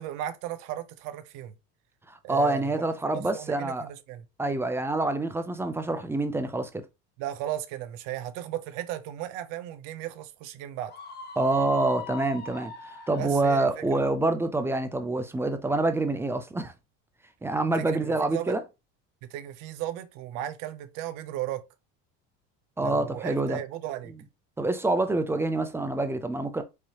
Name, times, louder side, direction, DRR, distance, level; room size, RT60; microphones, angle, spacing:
voice 1, 0.0-1.5 2.2-4.2 7.2-10.9 13.2-14.1 17.8-18.6 19.2-21.6 22.8-24.1, right 12 dB, 65° right, 0.7 m, -36 dB
voice 2, 2.1-3.8 4.4-6.7 11.4-12.7 13.1-16.7 17.4-18.6 22.8-23.6 24.6-26.6, right 2 dB, 10° right, 0.3 m, -26 dB
Screaming, 10.9-13.8, left 5 dB, 30° left, 0.8 m, -42 dB
4.9 x 2.8 x 2.8 m
cardioid pair, 135°, 34 cm